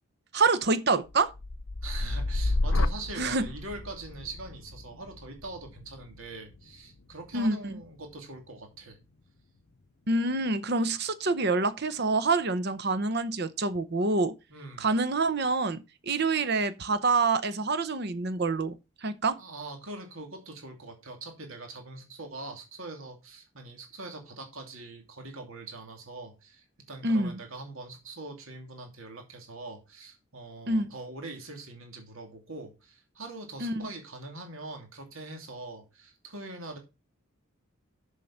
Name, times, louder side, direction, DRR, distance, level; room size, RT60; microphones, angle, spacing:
voice 1, 0.3-1.3 3.2-3.5 7.3-7.8 10.1-14.3 14.8-19.4 27.0-27.4 30.7-30.9 33.6-33.9, right 3 dB, 50° right, 0.8 m, -27 dB
sound 1, 1.1-9.1 9.6-10.1, left 2 dB, 70° left, 0.7 m, -33 dB
voice 2, 1.8-9.0 14.5-14.9 19.4-36.8, right 2 dB, 75° right, 2.6 m, -43 dB
7.5 x 6.4 x 5.7 m
head